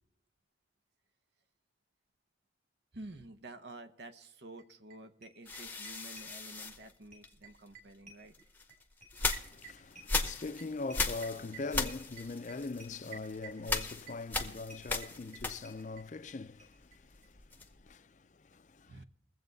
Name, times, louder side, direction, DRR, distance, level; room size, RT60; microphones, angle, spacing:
voice 1, 2.9-8.3 18.9-19.0, right 2 dB, 75° right, 0.9 m, -50 dB
sound 1, 4.6-4.7 4.9-5.0 5.2-6.9 7.1-16.3 16.6-16.7 16.9-17.0 17.2-17.3, right 4 dB, 45° right, 3.0 m, -51 dB
sound 2, 5.5-7.7 8.3-16.0 16.3-17.9, left 3 dB, 10° left, 0.8 m, -38 dB
voice 2, 9.1-19.0, left 3 dB, 45° left, 0.5 m, -42 dB
22.0 x 7.8 x 4.0 m
head